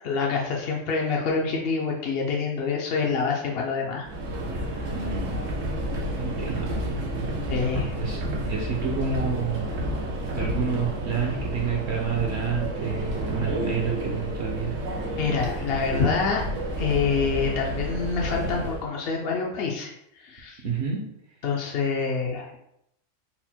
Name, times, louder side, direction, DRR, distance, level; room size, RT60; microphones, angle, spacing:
voice 1, 0.0-4.1 4.5-4.9 7.5-8.0 15.2-16.4 16.7-20.6 21.4-22.6, left 5 dB, 60° left, -1 dB, 0.7 m, -27 dB
Subway metro underground, 4.0-18.9, right 1 dB, 90° right, 1.2 m, -30 dB
voice 2, 4.9-5.4 6.2-6.7 8.0-9.6 10.3-14.7 20.6-21.0, right 6 dB, 65° right, 0 dB, 0.8 m, -29 dB
4.2 x 2.1 x 4.2 m, 0.78 s
omnidirectional pair, 1.3 m